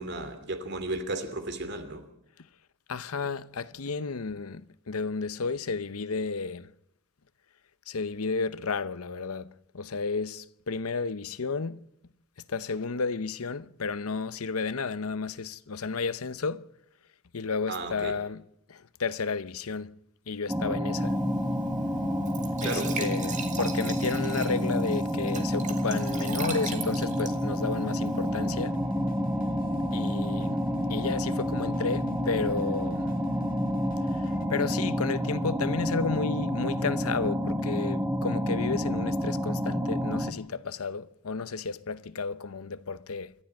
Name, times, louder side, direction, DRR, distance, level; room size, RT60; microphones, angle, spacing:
voice 1, 0.0-2.0 17.7-18.2 22.6-23.1, right 2 dB, 50° right, 2.7 m, -34 dB
voice 2, 2.9-6.7 7.9-11.8 12.5-16.7 17.3-18.4 18.7-20.0 20.3-21.2 22.6-28.8 29.9-30.6 30.9-33.1 34.1-43.3, left 4 dB, 80° left, 0.8 m, -32 dB
sound 1, 20.5-40.3, equal, 10° right, 1.4 m, -29 dB
Glass / Trickle dribble / Fill (with liquid), 20.9-28.3, right 5 dB, 35° right, 2.3 m, -40 dB
sound 2, 28.3-34.5, left 1 dB, 40° left, 2.2 m, -48 dB
28.0 x 12.0 x 8.9 m
head